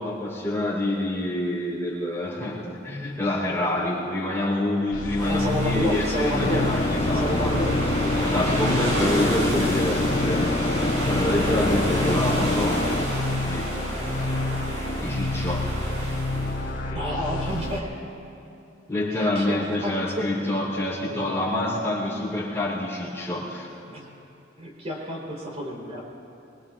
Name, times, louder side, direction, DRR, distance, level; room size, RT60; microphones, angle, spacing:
voice 1, 0.0-7.6 8.2-10.5 11.1-12.8 13.4-13.7 15.0-15.7 18.9-23.7, left 1 dB, 15° left, -5 dB, 4.1 m, -27 dB
sound 1, 4.9-17.8, left 2 dB, 80° left, 3.5 m, -29 dB
voice 2, 5.2-6.7 7.0-8.2 16.9-18.0 19.1-20.6 21.1-21.4 23.9-24.1 24.6-26.0, equal, 35° right, -3 dB, 4.0 m, -30 dB
sound 2, 5.2-16.7, right 1 dB, 70° right, 4.9 m, -31 dB
sound 3, 6.4-13.1, left 2 dB, 35° left, 0.5 m, -26 dB
25.0 x 22.0 x 2.5 m, 2.8 s
head